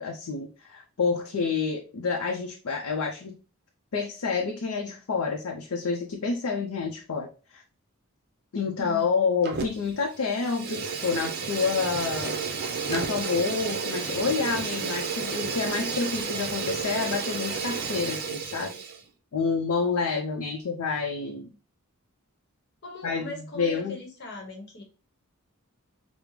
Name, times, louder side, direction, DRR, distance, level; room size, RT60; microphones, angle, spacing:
voice 1, 0.0-3.3 3.9-7.6 8.5-12.4 12.9-18.7 19.3-21.5 23.0-24.0, left 5 dB, 75° left, 1 dB, 0.5 m, -28 dB
voice 2, 8.8-9.1 22.8-24.8, left 2 dB, 50° left, 1 dB, 1.0 m, -39 dB
Fire, 9.4-10.0 10.2-19.0, right 5 dB, 45° right, 0.5 m, -31 dB
5.0 x 2.0 x 3.1 m, 0.36 s
head